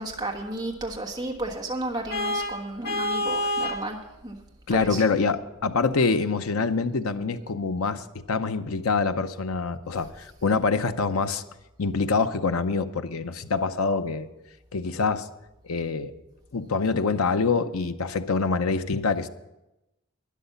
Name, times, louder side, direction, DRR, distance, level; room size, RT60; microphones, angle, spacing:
voice 1, 0.0-4.4 4.8-5.0, right 2 dB, 20° right, 0 dB, 1.3 m, -33 dB
Vehicle horn car horn honking, 2.1-3.9, left 1 dB, 50° left, 1.9 m, -27 dB
voice 2, 4.7-11.4 11.8-14.3 14.7-15.3 15.6-16.1 16.5-19.3, left 4 dB, 90° left, 10 dB, 0.7 m, -25 dB
12.0 x 10.5 x 5.6 m, 0.94 s
head